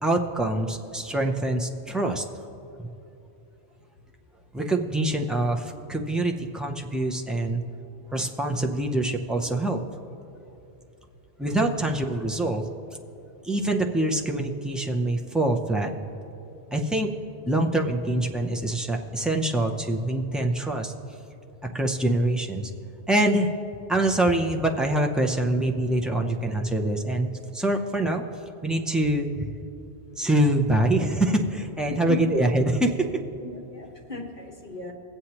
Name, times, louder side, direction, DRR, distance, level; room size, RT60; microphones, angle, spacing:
voice 1, 0.0-2.3 2.8-2.9 4.5-7.6 8.1-9.8 11.4-12.6 13.4-15.9 16.7-17.1 17.5-20.9 21.7-22.7 23.1-23.5 23.9-28.2 28.6-29.5 30.2-33.2, right 1 dB, ahead, 1 dB, 0.3 m, -25 dB
voice 2, 31.9-32.4 33.4-34.9, left 3 dB, 45° left, 0 dB, 1.3 m, -36 dB
21.0 x 7.9 x 2.9 m, 2.8 s
omnidirectional pair, 1.1 m